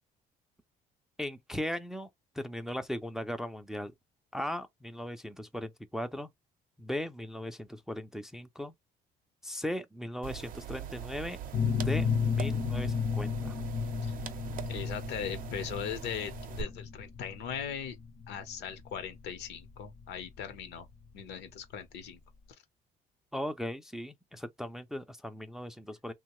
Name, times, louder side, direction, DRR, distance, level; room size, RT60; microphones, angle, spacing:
voice 1, 1.2-2.1 2.4-3.9 4.3-6.3 6.8-8.7 9.4-11.4 11.7-13.5 23.3-26.1, equal, 5° right, 0.4 m, -38 dB
sound 1, 10.2-16.6, right 9 dB, 55° right, 0.6 m, -42 dB
sound 2, 11.5-20.9, left 6 dB, 45° left, 0.6 m, -33 dB
voice 2, 14.7-16.3 16.6-18.0 18.3-20.9 21.1-22.2, left 8 dB, 80° left, 0.8 m, -39 dB
3.0 x 2.2 x 2.9 m
cardioid pair, 110°, 17 cm